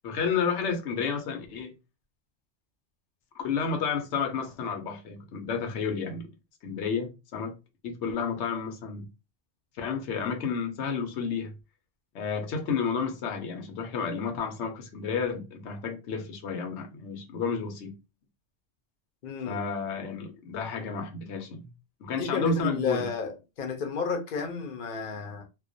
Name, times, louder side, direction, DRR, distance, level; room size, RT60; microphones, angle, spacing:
voice 1, 0.0-1.7 3.3-6.3 6.6-7.5 7.8-9.0 9.8-11.5 12.1-17.9 19.4-21.7 22.0-23.1, left 5 dB, 80° left, 0.9 m, -31 dB
voice 2, 19.2-19.6 22.1-25.4, left 5 dB, 55° left, 0.6 m, -32 dB
2.3 x 2.1 x 2.5 m
omnidirectional pair, 1.2 m